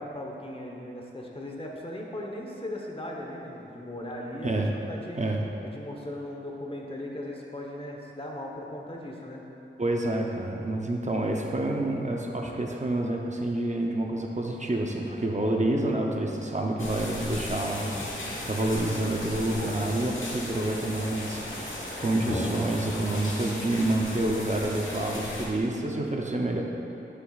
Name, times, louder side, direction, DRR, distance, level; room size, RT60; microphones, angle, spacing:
voice 1, 0.0-5.2 5.6-9.4, left 1 dB, 30° left, -1 dB, 1.0 m, -38 dB
voice 2, 9.8-18.1 18.4-26.6, right 1 dB, 40° right, 0 dB, 0.7 m, -28 dB
sound 1, 16.8-25.5, left 1 dB, 85° left, 1.3 m, -35 dB
11.0 x 6.7 x 2.4 m, 3.0 s
wide cardioid pair, 60°, 20 cm